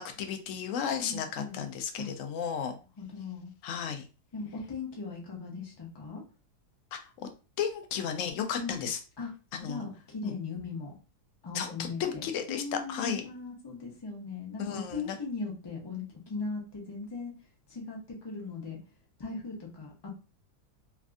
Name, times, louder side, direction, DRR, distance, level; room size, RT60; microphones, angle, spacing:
voice 1, 0.0-2.8 3.6-4.0 6.9-7.0 7.6-9.0 9.5-9.8 10.2-10.3 11.5-12.6 12.9-13.2 14.6-15.1, left 7 dB, 70° left, 6 dB, 0.7 m, -34 dB
voice 2, 1.0-1.6 2.0-2.1 3.0-3.5 4.3-6.2 8.6-8.9 9.2-9.3 9.6-10.9 11.4-17.3 17.7-18.8 19.2-20.1, left 4 dB, 30° left, -2 dB, 0.4 m, -39 dB
3.3 x 2.4 x 2.5 m, 0.33 s
omnidirectional pair, 1.8 m